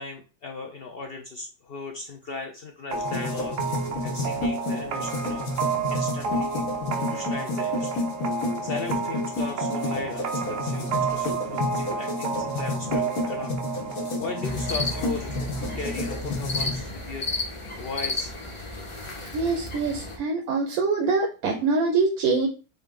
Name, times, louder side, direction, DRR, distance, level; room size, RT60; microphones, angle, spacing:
voice 1, 0.0-8.1 8.6-13.5 14.2-18.3, left 4 dB, 65° left, 3 dB, 0.6 m, -37 dB
sound 1, 2.9-16.8, left 3 dB, 90° left, 1.4 m, -31 dB
sound 2, 2.9-16.4, right 6 dB, 65° right, 1.0 m, -31 dB
sound 3, 14.4-20.2, left 2 dB, 25° left, 0.8 m, -33 dB
voice 2, 19.3-22.5, right 4 dB, 85° right, 2 dB, 1.2 m, -24 dB
3.9 x 3.4 x 3.6 m, 0.35 s
omnidirectional pair, 1.5 m